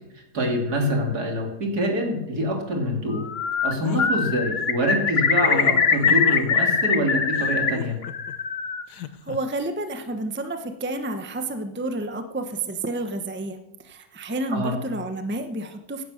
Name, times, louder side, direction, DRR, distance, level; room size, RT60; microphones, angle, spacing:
voice 1, 0.3-3.2 3.6-8.0 14.5-14.7, equal, 70° right, 2 dB, 3.2 m, -25 dB
Bird, 3.2-3.7 4.0-7.7 8.0-8.8, left 6 dB, 45° left, 1.2 m, -22 dB
sound 1, 3.8-4.1 5.4-6.6 7.3-8.3 8.9-9.4, left 10 dB, 85° left, 1.4 m, -35 dB
voice 2, 9.0-13.6 13.8-16.0, right 2 dB, 10° right, 8 dB, 0.8 m, -30 dB
16.5 x 10.5 x 6.5 m, 0.93 s
omnidirectional pair, 1.7 m